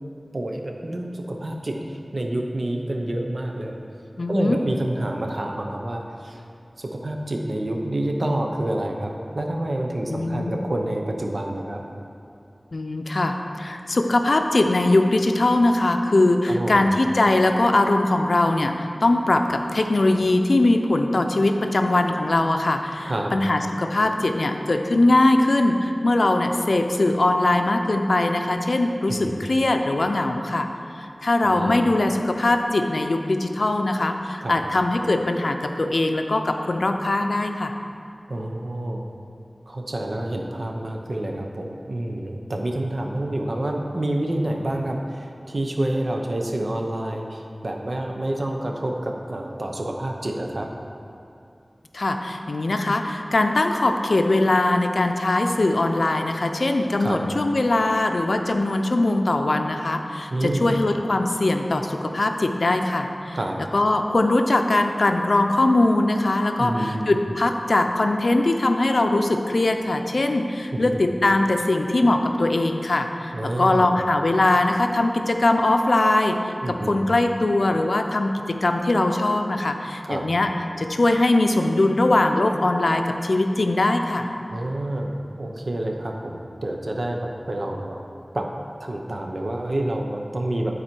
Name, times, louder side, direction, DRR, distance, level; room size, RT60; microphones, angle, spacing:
voice 1, 0.3-1.8 2.1-3.7 4.3-6.4 6.8-11.8 16.5-16.9 23.1-23.3 29.1-29.4 31.4-31.7 34.4-34.6 38.3-39.0 39.7-50.7 57.0-57.2 60.3-60.7 63.3-63.6 66.6-67.2 70.7-71.0 73.3-73.9 76.6-77.0 80.0-80.2 84.5-87.2 87.5-88.0 88.3-88.5 88.8-90.8, right 1 dB, 65° right, 1 dB, 0.8 m, -28 dB
voice 2, 4.2-4.6 10.1-10.6 12.7-30.7 31.0-37.7 51.9-63.4 63.7-80.5 80.8-84.3, left 2 dB, 80° left, 5 dB, 0.5 m, -21 dB
11.5 x 4.1 x 4.5 m, 2.5 s
wide cardioid pair, 50°, 0 cm